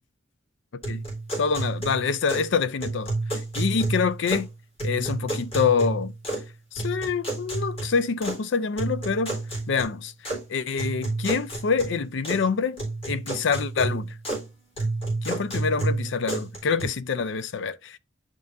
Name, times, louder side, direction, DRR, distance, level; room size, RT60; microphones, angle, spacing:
voice 1, 0.7-1.0 1.4-4.5 4.8-6.1 6.7-9.4 9.7-10.1 10.5-14.2 15.2-18.0, left 5 dB, 65° left, 0.5 m, -26 dB
sound 1, 0.8-2.5 2.8-4.5 4.8-6.5 6.8-8.4 8.8-10.4 10.8-12.5 12.8-14.5 14.8-16.8, right 2 dB, 30° left, 3.9 m, -30 dB
10.5 x 3.6 x 2.6 m
head